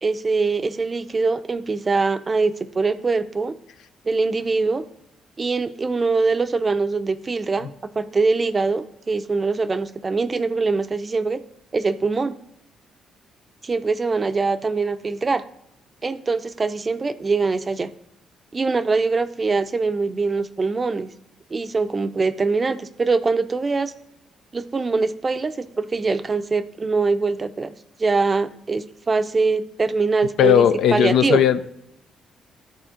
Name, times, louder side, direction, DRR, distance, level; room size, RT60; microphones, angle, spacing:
voice 1, 0.0-3.5 4.1-4.8 5.4-11.4 11.7-12.4 13.6-15.4 16.0-17.9 18.5-21.1 21.5-23.9 24.5-27.7 28.0-31.4, right 4 dB, 30° right, 11 dB, 0.5 m, -23 dB
voice 2, 30.4-31.7, left 9 dB, 75° left, 12 dB, 0.4 m, -17 dB
12.5 x 4.3 x 3.7 m, 0.80 s
cardioid pair, 90°, 0 cm